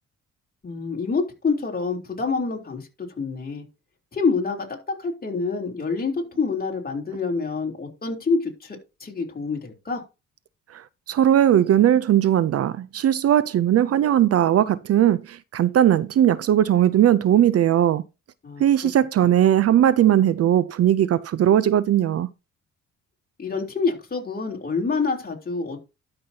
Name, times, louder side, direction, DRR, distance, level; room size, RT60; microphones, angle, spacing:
voice 1, 0.6-3.6 4.1-10.0 18.4-18.6 19.2-19.3 23.4-25.8, left 4 dB, 30° left, 3.2 m, -27 dB
voice 2, 11.1-18.0 18.6-22.3, right 11 dB, 55° right, 0.5 m, -18 dB
12.0 x 5.8 x 2.8 m
cardioid pair, 90°, 30 cm